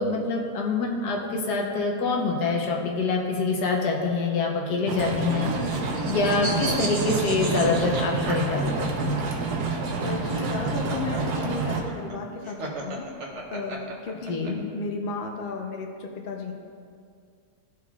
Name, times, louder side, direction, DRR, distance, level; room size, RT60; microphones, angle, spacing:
voice 1, 0.0-9.2 14.3-14.6, left 3 dB, 85° left, 0 dB, 1.5 m, -26 dB
sound 1, 4.9-11.8, right 4 dB, 80° right, 1.3 m, -28 dB
sound 2, 5.0-9.0 10.3-14.5, right 2 dB, 55° right, 1.1 m, -34 dB
voice 2, 10.0-13.0 13.5-16.5, left 3 dB, 50° left, 2 dB, 0.7 m, -34 dB
13.5 x 4.7 x 2.3 m, 2.2 s
omnidirectional pair, 1.7 m